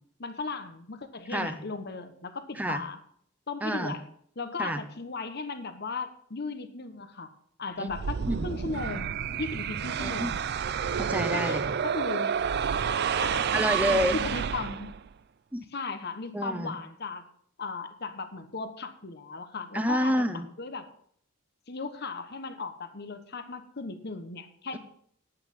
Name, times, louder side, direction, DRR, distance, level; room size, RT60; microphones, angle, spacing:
voice 1, 0.2-3.0 3.5-4.0 4.4-7.3 7.6-8.1 8.4-10.4 11.3-12.3 13.2-14.9 15.7-17.2 17.6-20.1 20.6-20.9 21.7-24.8, left 3 dB, 50° left, 9 dB, 1.1 m, -36 dB
voice 2, 1.3-1.6 2.6-2.8 3.6-4.0 4.6-4.8 7.8-7.9 8.3-8.5 10.0-10.3 11.0-11.7 13.5-14.2 15.5-15.6 16.3-16.8 19.7-20.5, equal, 10° right, 8 dB, 0.7 m, -28 dB
sound 1, 7.9-15.1, right 7 dB, 50° right, 0.4 m, -29 dB
10.5 x 8.8 x 5.5 m, 0.65 s
head